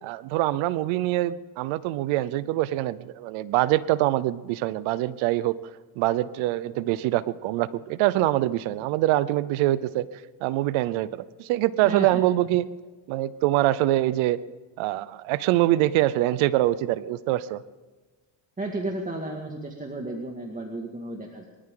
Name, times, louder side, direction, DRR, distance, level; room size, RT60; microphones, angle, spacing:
voice 1, 0.0-5.6 6.0-10.1 10.4-12.7 13.1-14.4 14.8-17.6, right 15 dB, 90° right, 17 dB, 0.8 m, -24 dB
voice 2, 11.8-12.2 18.6-21.5, right 2 dB, 15° right, 1 dB, 2.1 m, -33 dB
24.5 x 13.5 x 3.9 m, 1.3 s
cardioid pair, 95°, 47 cm